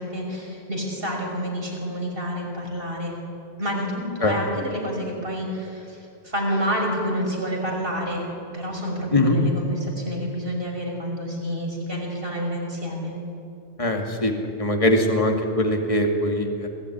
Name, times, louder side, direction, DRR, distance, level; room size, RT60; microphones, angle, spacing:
voice 1, 0.0-3.2 3.6-8.2 8.5-13.1, equal, 65° right, 0 dB, 6.1 m, -28 dB
voice 2, 13.8-14.3 14.6-16.7, left 1 dB, 35° left, 2 dB, 2.4 m, -21 dB
26.0 x 17.0 x 9.9 m, 2.5 s
omnidirectional pair, 1.1 m